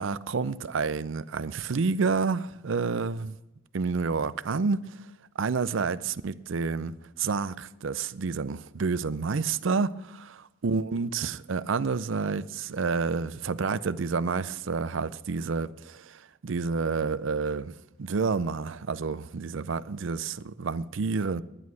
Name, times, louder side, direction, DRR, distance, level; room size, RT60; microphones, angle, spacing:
voice 1, 0.0-3.4 3.7-5.0 5.4-10.4 10.6-17.7 18.0-21.4, right 4 dB, 70° right, 0.5 m, -29 dB
11.0 x 9.5 x 6.1 m
head